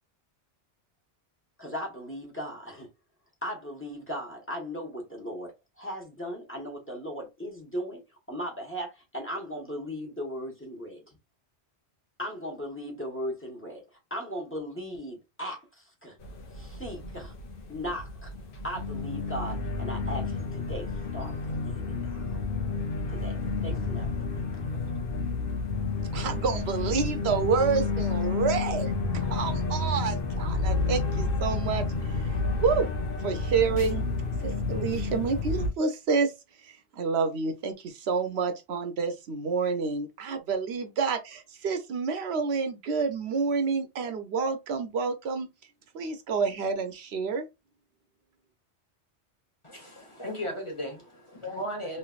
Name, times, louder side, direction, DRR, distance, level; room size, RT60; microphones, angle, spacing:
voice 1, 1.6-2.9 3.4-8.0 8.3-11.0 12.2-13.8 14.1-16.2 16.5-17.3 17.7-18.3 18.6-22.4 23.1-23.4 23.6-24.1, equal, 10° left, 1.1 m, -37 dB
sound 1, 16.2-35.7, left 3 dB, 55° left, 1.0 m, -30 dB
voice 2, 26.1-32.3 32.6-32.9 33.2-34.0 34.4-36.3 36.6-45.5 45.9-47.5, right 5 dB, 70° right, 0.9 m, -29 dB
voice 3, 49.6-52.0, equal, 30° left, 1.0 m, -36 dB
3.2 x 2.9 x 2.3 m
omnidirectional pair, 1.1 m